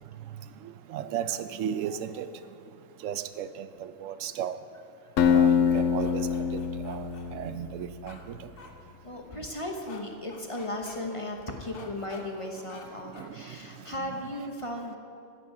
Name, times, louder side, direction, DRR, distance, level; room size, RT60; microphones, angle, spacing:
voice 1, 0.6-2.3 3.0-4.6 5.3-8.5 13.0-14.4, right 9 dB, 85° right, 12 dB, 1.0 m, -36 dB
Acoustic guitar, 5.2-8.2, left 7 dB, 85° left, 1.1 m, -25 dB
sound 1, 5.7-7.3 8.1-8.2 8.6-8.7 9.9-10.0 10.3-11.0 11.7-12.2 12.7-12.9 13.1-13.3, left 5 dB, 50° left, 1.1 m, -48 dB
voice 2, 9.0-15.0, left 1 dB, 30° left, 2 dB, 0.9 m, -36 dB
13.5 x 9.5 x 4.7 m, 2.7 s
omnidirectional pair, 1.3 m